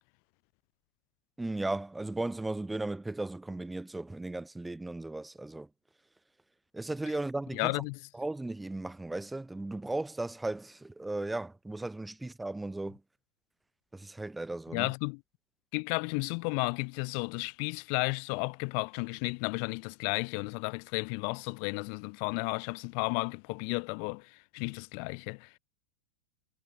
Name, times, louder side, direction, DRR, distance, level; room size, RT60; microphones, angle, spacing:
voice 1, 1.4-5.7 6.7-7.8 8.1-13.0 13.9-14.9, right 2 dB, 5° right, 3.1 m, -36 dB
voice 2, 7.5-8.0 14.7-15.2 15.7-25.5, left 40 dB or more, 45° left, 1.5 m, -33 dB
figure-of-eight pair, 90°, 0 cm